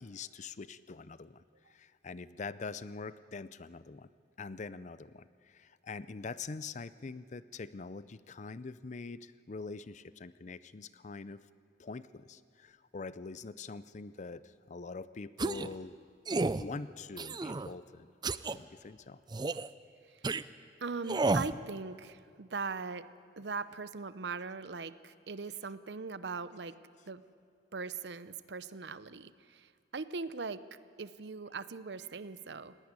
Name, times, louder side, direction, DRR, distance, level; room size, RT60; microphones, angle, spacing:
voice 1, 0.0-4.1 4.4-11.4 11.8-16.0 16.6-18.1 18.5-19.2 19.5-19.6, left 4 dB, 40° left, 16 dB, 0.5 m, -44 dB
sound 1, 15.4-15.7 16.3-16.6 17.2-17.7 18.2-18.6 19.3-19.7 20.2-20.4 21.1-21.5, right 3 dB, 25° right, 0.4 m, -31 dB
voice 2, 20.8-23.1 23.4-26.7 27.1-27.2 27.7-30.6 31.0-32.8, right 4 dB, 70° right, 14 dB, 0.7 m, -40 dB
19.0 x 17.0 x 9.6 m, 2.3 s
head